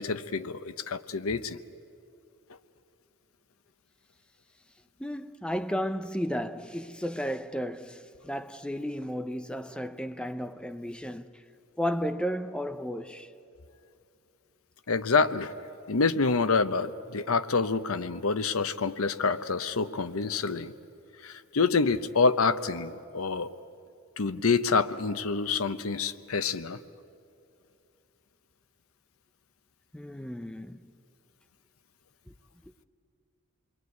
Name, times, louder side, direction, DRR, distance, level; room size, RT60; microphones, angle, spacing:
voice 1, 0.0-1.6 14.9-15.5 15.9-20.7 21.2-23.5 24.2-26.8, left 4 dB, 85° left, 0.8 m, -27 dB
voice 2, 5.0-11.4 11.8-13.3 29.9-30.9, equal, 5° left, 0.6 m, -33 dB
28.0 x 22.5 x 9.5 m
head